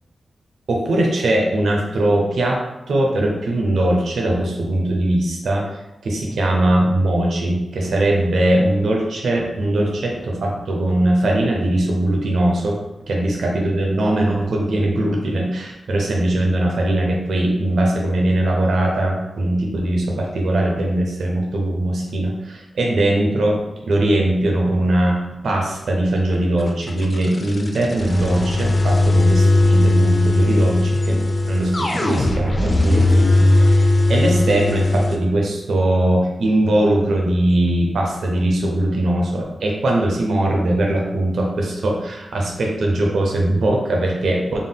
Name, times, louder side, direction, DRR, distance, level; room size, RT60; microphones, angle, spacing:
voice 1, 0.7-2.6 2.9-12.8 13.1-31.1 31.5-44.6, right 1 dB, 80° right, -1 dB, 0.7 m, -20 dB
sound 1, 26.6-35.2, left 2 dB, 30° left, 0.4 m, -17 dB
3.6 x 2.2 x 3.7 m, 0.96 s
wide cardioid pair, 160°, 0 cm